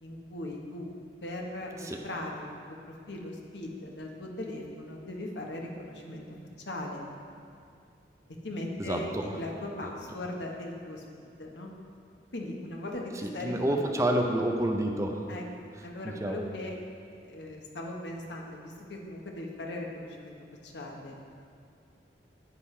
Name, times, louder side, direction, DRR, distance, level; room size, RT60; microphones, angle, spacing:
voice 1, 0.0-0.9 1.2-2.8 3.1-6.2 6.6-7.0 8.4-11.7 12.3-13.8 15.3-15.4 15.8-16.8 17.2-21.2, left 1 dB, 80° left, 0 dB, 1.2 m, -39 dB
voice 2, 8.8-9.2 13.4-15.2 16.2-16.4, right 1 dB, 15° right, 2 dB, 0.6 m, -28 dB
9.8 x 9.2 x 3.3 m, 2.3 s
head